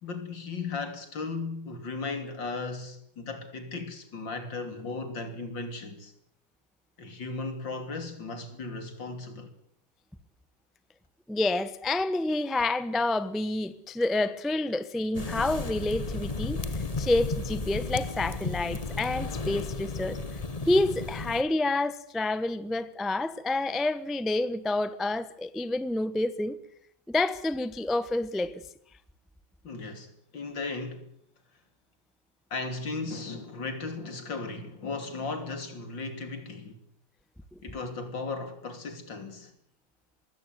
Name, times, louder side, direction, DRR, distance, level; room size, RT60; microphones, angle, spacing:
voice 1, 0.0-6.1 7.0-9.5 29.6-31.1 32.5-36.8 37.6-39.5, left 3 dB, 60° left, 3.6 m, -36 dB
voice 2, 11.3-16.6 17.0-20.2 20.7-26.6 27.1-28.6, left 2 dB, ahead, 0.4 m, -28 dB
sound 1, 15.1-21.4, left 3 dB, 25° left, 0.9 m, -34 dB
22.0 x 17.0 x 9.4 m
omnidirectional pair, 2.3 m